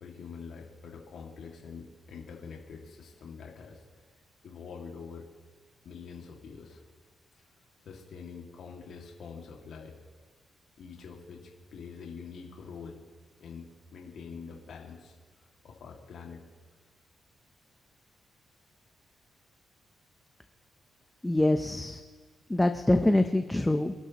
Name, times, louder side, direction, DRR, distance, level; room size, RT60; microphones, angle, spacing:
voice 1, 0.0-3.8 4.4-5.3 5.8-6.8 7.8-10.0 10.8-13.0 13.4-15.2 15.6-16.4, left 5 dB, 75° left, -1 dB, 2.3 m, -45 dB
voice 2, 21.2-22.0 22.5-23.9, left 1 dB, 10° left, 7 dB, 0.8 m, -25 dB
27.0 x 11.5 x 3.1 m, 1.5 s
cardioid pair, 80°, 0 cm